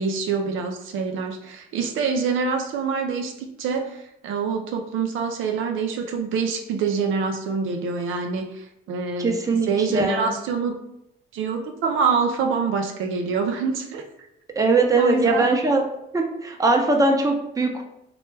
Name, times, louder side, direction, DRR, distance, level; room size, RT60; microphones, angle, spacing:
voice 1, 0.0-9.3 9.7-10.8 11.3-14.0 15.0-15.5, right 5 dB, 80° right, 4 dB, 0.5 m, -25 dB
voice 2, 9.2-10.3 14.6-15.8 16.1-17.8, right 3 dB, 15° right, 2 dB, 0.6 m, -21 dB
3.2 x 2.2 x 3.1 m, 0.80 s
cardioid pair, 90°, 20 cm